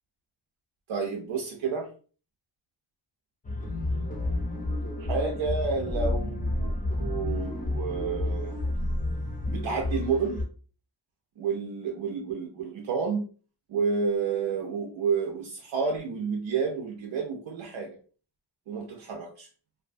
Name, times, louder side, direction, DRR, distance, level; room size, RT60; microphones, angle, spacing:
voice 1, 0.9-1.9 5.0-8.5 9.5-10.4 11.4-13.3 13.7-18.0 18.7-19.5, right 5 dB, 80° right, 1 dB, 0.5 m, -30 dB
sound 1, 3.4-10.4, left 1 dB, 20° left, 0.5 m, -30 dB
2.5 x 2.1 x 2.5 m, 0.39 s
wide cardioid pair, 135°, 46 cm